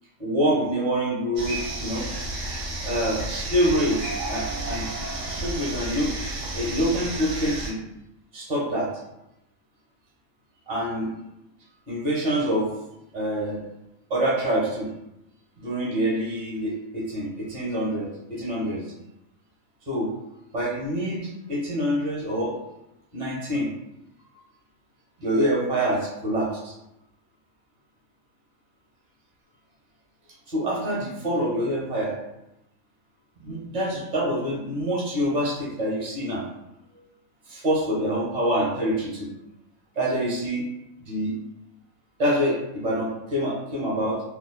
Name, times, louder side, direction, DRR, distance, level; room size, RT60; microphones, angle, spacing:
voice 1, 0.2-2.1 2.8-4.9 5.3-6.1 6.5-7.8 8.3-8.9 10.7-11.1 11.9-12.7 13.1-13.6 14.1-14.9 15.6-18.9 19.9-20.1 20.5-22.5 23.1-23.7 25.2-26.7 30.5-32.1 33.4-36.4 36.9-37.0 37.5-39.3 39.9-40.6 41.0-41.3 42.2-44.2, equal, 35° right, -5 dB, 0.8 m, -26 dB
sound 1, 1.4-7.7, right 2 dB, 65° right, 0.9 m, -31 dB
2.4 x 2.2 x 2.2 m, 0.88 s
omnidirectional pair, 1.5 m